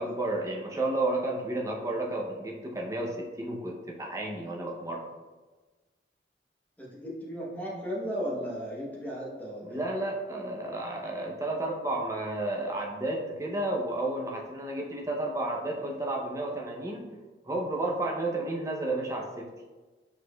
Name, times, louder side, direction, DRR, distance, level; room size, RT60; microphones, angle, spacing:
voice 1, 0.0-5.0 9.6-17.1 17.4-19.5, right 2 dB, 15° right, -1 dB, 0.6 m, -32 dB
voice 2, 6.8-9.8, equal, 10° left, -4 dB, 0.9 m, -35 dB
4.6 x 4.2 x 2.2 m, 1.3 s
head